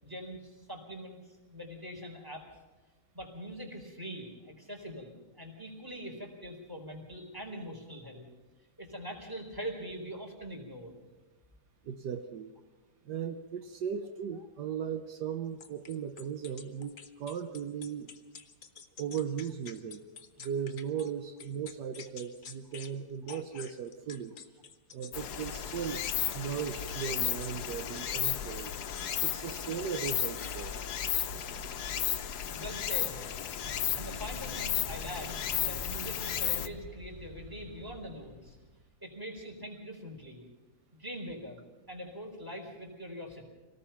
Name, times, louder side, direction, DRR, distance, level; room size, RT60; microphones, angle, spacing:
voice 1, 0.0-2.5 3.1-8.3 8.8-10.9 32.5-33.2 33.7-38.6 39.0-40.4 40.9-41.6 41.9-43.4, equal, 10° right, 2 dB, 4.1 m, -43 dB
voice 2, 11.8-12.5 13.0-18.1 19.0-20.0 20.4-24.4 24.9-26.0 26.3-28.7 29.2-30.8, right 7 dB, 75° right, 8 dB, 1.5 m, -37 dB
sound 1, 15.6-21.1 21.4-22.9 23.3-28.1 28.7-29.3 29.6-31.1, left 7 dB, 50° left, 1.5 m, -50 dB
Stream, 25.1-36.7, left 9 dB, 70° left, 1.3 m, -34 dB
sound 2, 33.6-38.9, right 1 dB, 30° right, 1.3 m, -47 dB
26.0 x 18.5 x 5.8 m, 1.2 s
omnidirectional pair, 1.8 m